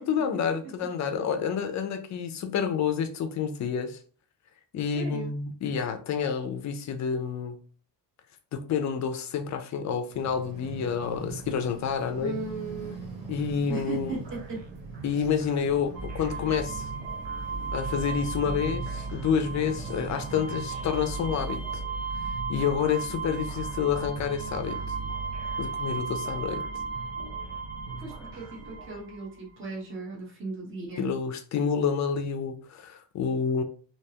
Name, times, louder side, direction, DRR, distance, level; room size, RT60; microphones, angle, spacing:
voice 1, 0.0-4.0 4.7-7.6 8.5-12.4 13.3-14.1 15.0-16.8 17.7-21.8 22.5-24.8 25.6-26.6 31.0-33.6, left 7 dB, 40° left, 7 dB, 0.5 m, -29 dB
voice 2, 4.9-5.3 12.2-12.9 13.2-13.3 13.7-14.6 28.0-31.1, right 3 dB, 30° right, -2 dB, 1.1 m, -36 dB
sound 1, 10.1-21.8, right 4 dB, 50° right, 1.2 m, -43 dB
sound 2, 14.2-29.0, right 3 dB, 80° right, 0.9 m, -45 dB
sound 3, 15.9-29.4, right 4 dB, 10° right, 1.8 m, -35 dB
3.4 x 2.9 x 2.8 m, 0.40 s
cardioid pair, 170°, 43 cm